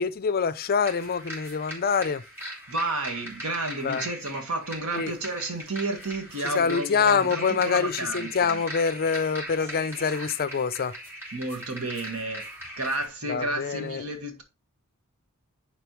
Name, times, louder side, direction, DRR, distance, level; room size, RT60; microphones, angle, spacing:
voice 1, 0.0-2.2 3.8-4.1 4.9-5.1 6.4-10.9 13.3-14.0, left 6 dB, 45° left, 0.5 m, -25 dB
sound 1, 0.8-13.1, equal, 10° right, 2.9 m, -40 dB
voice 2, 2.7-8.6 11.3-12.5 12.8-14.4, right 2 dB, 85° right, 1.7 m, -31 dB
10.5 x 4.1 x 3.1 m
head